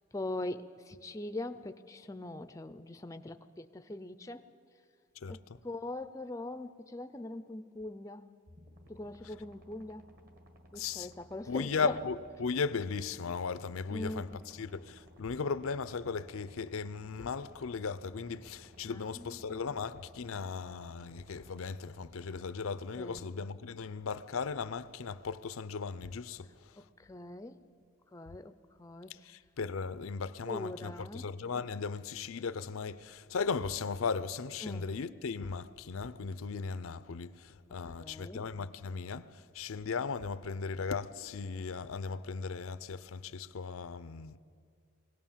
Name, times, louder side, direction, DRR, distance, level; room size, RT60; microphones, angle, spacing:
voice 1, 0.1-4.5 5.3-8.3 8.9-10.1 10.7-11.9 13.9-14.3 18.9-19.6 23.0-23.3 26.8-27.6 28.1-29.3 30.4-31.3 34.6-34.9 38.0-38.4, left 2 dB, 15° left, 0.4 m, -42 dB
voice 2, 5.2-5.6 10.7-11.1 11.5-26.5 29.2-44.4, left 5 dB, 90° left, 0.6 m, -37 dB
sound 1, 8.5-23.0, equal, 45° right, 1.7 m, -58 dB
21.5 x 17.0 x 7.3 m
head